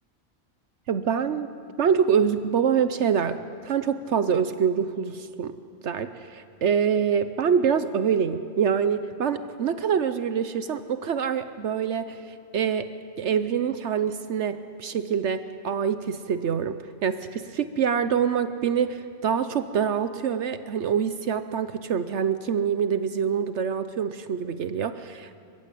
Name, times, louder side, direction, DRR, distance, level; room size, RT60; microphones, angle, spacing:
voice 1, 0.9-1.5 1.8-5.6 5.8-12.9 13.2-25.4, right 7 dB, 70° right, 11 dB, 1.1 m, -25 dB
29.5 x 15.0 x 8.4 m, 2.4 s
omnidirectional pair, 1.2 m